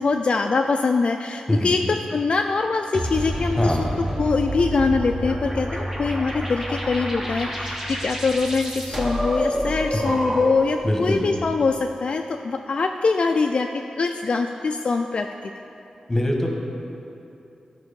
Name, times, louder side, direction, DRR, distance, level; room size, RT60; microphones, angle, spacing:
voice 1, 0.0-3.9 4.2-13.7 14.0-15.5, left 4 dB, 50° left, 4 dB, 0.3 m, -23 dB
sound 1, 2.9-10.8, equal, 15° right, 1.1 m, -28 dB
voice 2, 3.6-3.9 9.9-10.1 10.8-11.3 16.1-16.5, left 1 dB, 15° left, 0 dB, 1.4 m, -23 dB
12.0 x 4.5 x 5.2 m, 2.8 s
wide cardioid pair, 85°, 2 cm